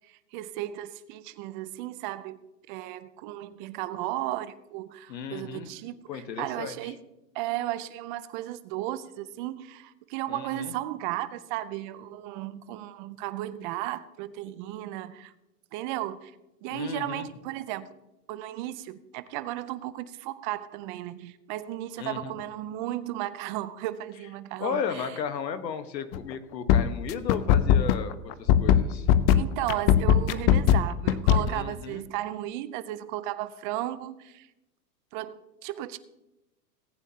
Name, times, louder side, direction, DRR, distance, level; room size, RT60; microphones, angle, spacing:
voice 1, 0.1-2.4 2.7-7.0 7.3-15.3 15.7-16.3 16.6-17.9 18.3-25.1 29.3-34.5 35.1-36.0, right 14 dB, 30° right, 15 dB, 0.5 m, -35 dB
voice 2, 5.1-5.7 6.1-6.9 10.3-10.7 16.7-17.3 22.0-22.3 24.6-28.1 28.4-29.1 31.4-32.0, left 7 dB, 85° left, 10 dB, 1.4 m, -34 dB
sound 1, 26.1-26.3 26.7-31.5, left 10 dB, 35° left, 0.6 m, -19 dB
18.5 x 9.1 x 2.8 m, 0.94 s
hypercardioid pair, 130°, 49 cm